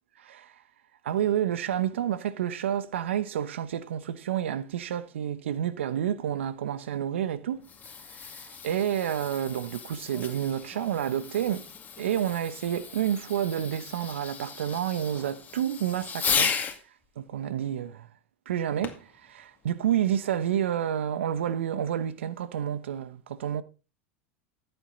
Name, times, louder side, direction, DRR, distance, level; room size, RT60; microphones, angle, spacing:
voice 1, 0.2-0.5 1.0-7.6 8.1-11.7 12.0-16.5 17.2-18.1 18.5-23.6, right 10 dB, 85° right, 1.0 m, -29 dB
Fireworks, 7.5-16.8 18.8-19.2 19.9-20.0, left 6 dB, 25° left, 2.2 m, -35 dB
14.0 x 8.2 x 4.0 m
hypercardioid pair, 95°, 6 cm